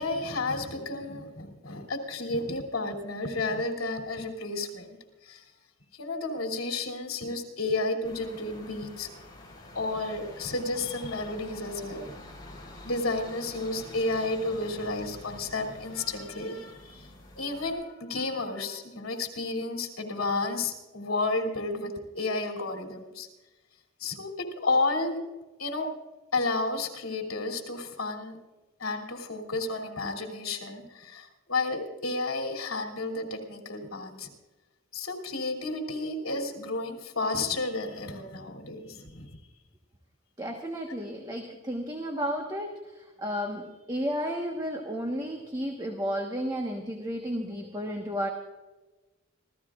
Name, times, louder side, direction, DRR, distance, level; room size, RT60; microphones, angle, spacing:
voice 1, 0.0-5.0 5.2-5.5 5.9-9.1 9.7-12.1 12.8-17.1 17.4-23.3 24.0-25.2 25.6-25.9 26.3-28.4 28.8-34.3 34.9-39.4, left 2 dB, 80° left, 2 dB, 2.9 m, -32 dB
sound 1, 8.0-17.7, left 1 dB, 20° left, 3.3 m, -47 dB
voice 2, 40.4-48.3, equal, 20° right, 1 dB, 1.2 m, -33 dB
27.0 x 14.5 x 2.5 m, 1.1 s
head